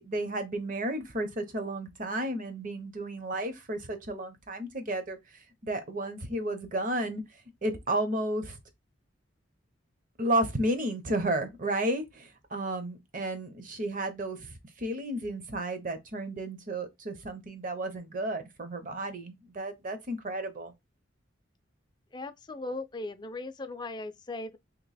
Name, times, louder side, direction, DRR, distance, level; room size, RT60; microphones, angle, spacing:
voice 1, 0.0-7.2 7.6-8.6 10.2-20.7, right 1 dB, 45° right, 0.8 m, -32 dB
voice 2, 22.1-24.6, left 2 dB, 20° left, 0.4 m, -38 dB
3.0 x 2.8 x 4.0 m
head